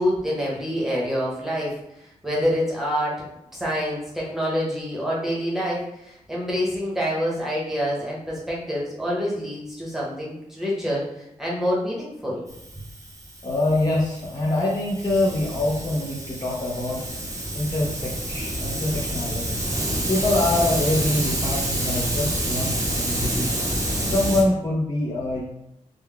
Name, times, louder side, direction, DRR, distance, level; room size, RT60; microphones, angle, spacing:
voice 1, 0.0-3.2 3.5-12.4, equal, 5° right, -5 dB, 1.0 m, -27 dB
Hiss, 12.5-24.4, right 1 dB, 25° right, 0.7 m, -28 dB
voice 2, 13.4-17.0 17.5-19.6 20.1-23.5 24.0-25.4, left 2 dB, 30° left, -4 dB, 0.7 m, -25 dB
3.8 x 2.2 x 3.4 m, 0.84 s
wide cardioid pair, 135°, 13 cm